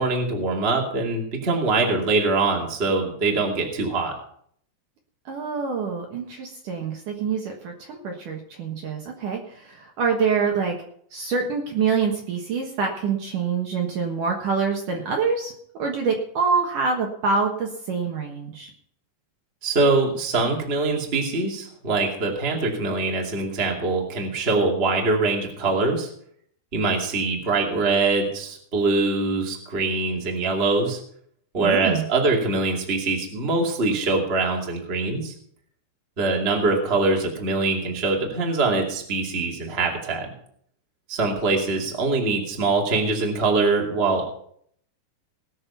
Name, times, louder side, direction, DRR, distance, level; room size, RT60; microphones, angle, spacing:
voice 1, 0.0-4.1 19.6-26.1 26.7-31.0 31.5-35.3 36.2-40.3 41.1-44.4, right 3 dB, 20° right, 0 dB, 1.7 m, -23 dB
voice 2, 5.3-10.8 11.1-15.5 15.8-18.7 31.6-32.1, right 5 dB, 60° right, 1 dB, 2.6 m, -26 dB
19.5 x 6.6 x 5.7 m, 0.65 s
omnidirectional pair, 4.8 m